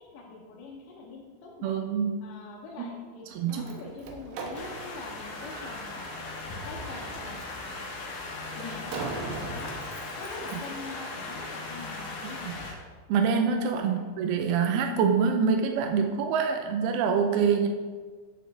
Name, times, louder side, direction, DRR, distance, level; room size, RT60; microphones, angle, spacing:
voice 1, 0.0-1.8 2.2-6.1 6.6-7.9 8.6-9.7 10.2-12.5 13.8-14.1, left 3 dB, 80° left, -4 dB, 3.1 m, -43 dB
voice 2, 1.6-2.2 2.8-2.9 3.3-3.6 12.4-12.5 13.1-17.7, right 6 dB, 90° right, 4 dB, 2.2 m, -25 dB
Slam, 3.3-10.8, right 4 dB, 75° right, 2.9 m, -42 dB
sound 1, 4.5-12.7, left 3 dB, 65° left, 2.6 m, -38 dB
10.5 x 6.4 x 3.4 m, 1.5 s
omnidirectional pair, 5.1 m